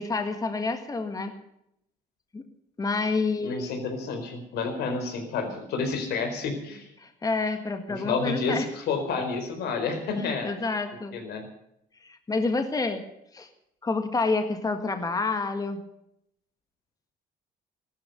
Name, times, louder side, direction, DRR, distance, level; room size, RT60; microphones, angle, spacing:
voice 1, 0.0-1.3 2.3-2.4 2.8-3.7 7.0-8.7 10.2-11.1 12.0-13.0 13.3-13.5 13.8-15.8, left 3 dB, 20° left, 7 dB, 1.7 m, -28 dB
voice 2, 3.4-6.9 8.0-10.5 11.1-11.4, left 4 dB, 75° left, 6 dB, 4.6 m, -30 dB
16.0 x 13.5 x 6.8 m, 0.78 s
cardioid pair, 110°, 17 cm